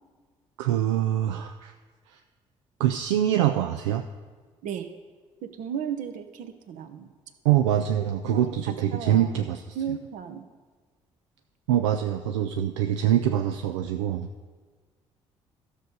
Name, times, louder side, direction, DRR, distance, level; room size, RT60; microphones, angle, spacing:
voice 1, 0.6-1.7 2.1-2.2 2.8-4.0 7.4-9.8 11.7-14.3, right 11 dB, 80° right, 7 dB, 0.4 m, -24 dB
voice 2, 5.4-7.1 8.3-9.3 9.7-10.4, right 8 dB, 60° right, 8 dB, 0.9 m, -35 dB
13.0 x 6.5 x 5.3 m, 1.4 s
figure-of-eight pair, 50°, 15 cm